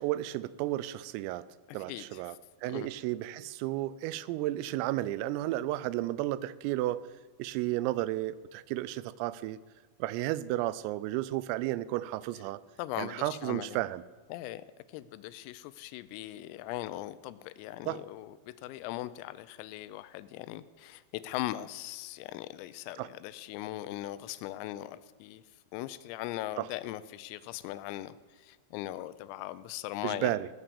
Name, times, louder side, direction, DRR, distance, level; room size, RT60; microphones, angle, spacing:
voice 1, 0.0-1.4 1.7-2.4 2.6-7.0 7.4-9.6 10.0-12.6 13.0-14.0 17.9-18.0 23.0-23.1 26.6-26.7 30.0-30.5, right 15 dB, 90° right, 17 dB, 3.3 m, -33 dB
voice 2, 1.7-2.2 2.7-2.9 12.8-13.8 14.3-14.6 14.9-25.4 25.7-30.4, left 15 dB, 90° left, 15 dB, 3.3 m, -39 dB
17.5 x 7.3 x 7.0 m, 1.5 s
omnidirectional pair, 5.9 m